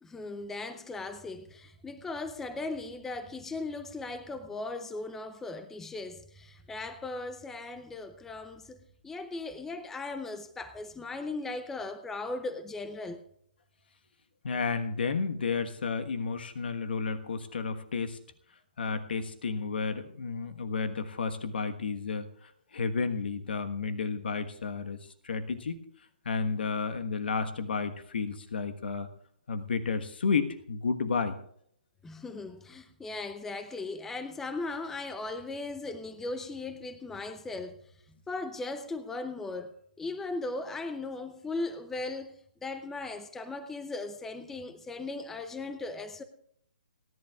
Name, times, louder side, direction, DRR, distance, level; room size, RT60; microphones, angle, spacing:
voice 1, 0.0-13.2 32.0-37.8 38.3-46.2, left 3 dB, 5° left, 0.6 m, -38 dB
voice 2, 14.4-18.2 18.8-25.0 25.2-25.8 26.2-29.1 29.5-31.4, left 5 dB, 70° left, 1.3 m, -32 dB
30.0 x 11.0 x 2.4 m
hypercardioid pair, 150°, 6 cm